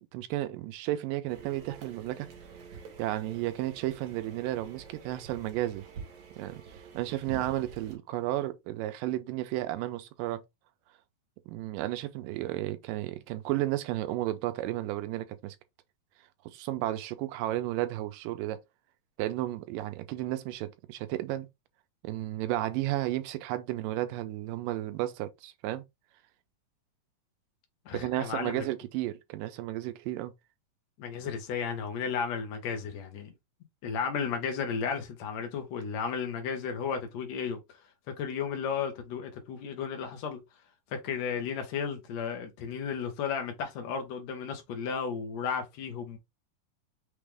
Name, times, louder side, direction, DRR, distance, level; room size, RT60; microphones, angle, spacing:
voice 1, 0.1-2.3 3.0-5.9 6.4-6.6 6.9-10.4 11.5-15.6 16.5-18.6 19.2-21.5 22.0-25.8 27.9-30.3, right 15 dB, 80° right, 2.2 m, -33 dB
sound 1, 1.3-8.0, right 6 dB, 65° right, 2.3 m, -47 dB
voice 2, 27.9-28.7 31.0-33.3 33.8-37.6 38.1-40.4 40.9-46.2, left 6 dB, 65° left, 2.0 m, -34 dB
6.0 x 2.5 x 3.4 m
omnidirectional pair, 4.0 m